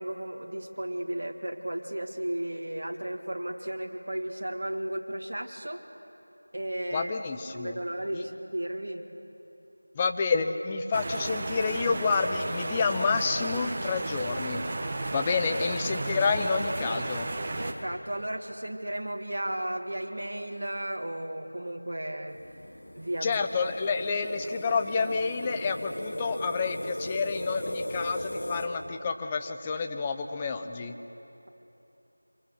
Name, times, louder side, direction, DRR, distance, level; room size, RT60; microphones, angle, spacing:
voice 1, 0.0-5.8 6.5-7.1 7.5-9.0 17.6-22.4 22.9-23.4, right 1 dB, 50° right, 2 dB, 2.2 m, -34 dB
voice 2, 6.9-7.8 8.1-8.2 9.9-14.6 15.1-17.3 23.2-31.0, left 4 dB, 10° left, 6 dB, 0.7 m, -29 dB
sound 1, 10.9-17.7, right 2 dB, 25° right, 1.2 m, -33 dB
sound 2, 22.3-28.7, left 1 dB, 50° left, 3.7 m, -37 dB
26.0 x 22.0 x 8.0 m, 3.0 s
figure-of-eight pair, 170°, 0 cm